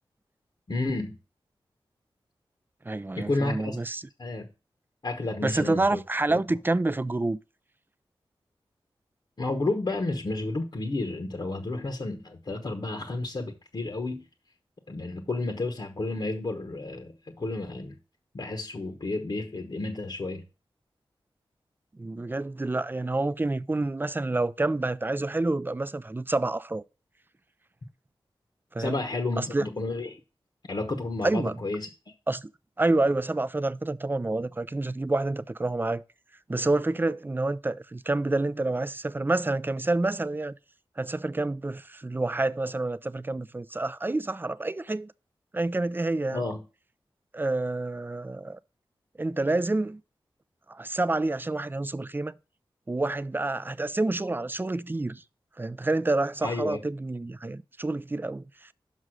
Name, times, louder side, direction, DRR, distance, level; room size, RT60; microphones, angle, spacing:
voice 1, 0.7-1.2 3.2-3.8 4.2-4.5 5.0-6.0 6.3-6.4 9.4-14.3 14.9-17.9 18.3-20.4 28.8-30.2 30.7-31.9 46.3-46.6 56.4-56.8, left 2 dB, 50° left, 1.0 m, -31 dB
voice 2, 2.9-4.0 5.4-7.4 22.0-26.8 28.7-29.0 29.4-29.7 31.2-31.6 32.3-32.5 32.8-36.0 36.5-40.5 41.0-45.1 45.5-46.4 47.3-48.6 49.2-50.0 50.7-52.3 52.9-55.2 55.6-58.7, right 2 dB, 20° right, 0.4 m, -28 dB
6.2 x 5.4 x 6.3 m
cardioid pair, 55°, 10 cm